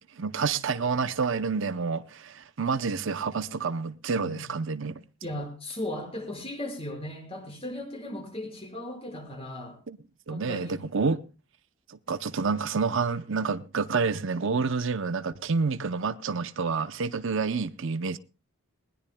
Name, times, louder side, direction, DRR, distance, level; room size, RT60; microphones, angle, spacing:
voice 1, 0.2-5.0 10.3-11.3 11.9-18.2, right 4 dB, 55° right, 0.7 m, -28 dB
voice 2, 5.2-9.8 10.3-10.9, left 1 dB, 25° left, 5.3 m, -37 dB
20.5 x 20.5 x 2.2 m
head